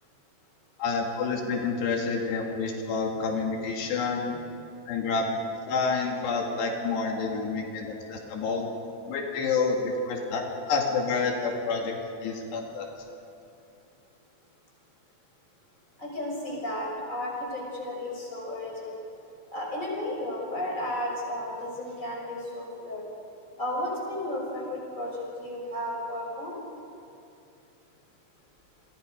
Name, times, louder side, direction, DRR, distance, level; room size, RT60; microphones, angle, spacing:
voice 1, 0.8-4.4 4.9-5.3 5.7-8.7 9.1-11.9 12.2-12.9, left 4 dB, 85° left, 1 dB, 4.3 m, -28 dB
voice 2, 16.0-18.9 19.5-23.0 23.6-26.6, left 1 dB, 20° left, -2 dB, 6.2 m, -33 dB
29.5 x 23.5 x 5.2 m, 2.6 s
omnidirectional pair, 4.7 m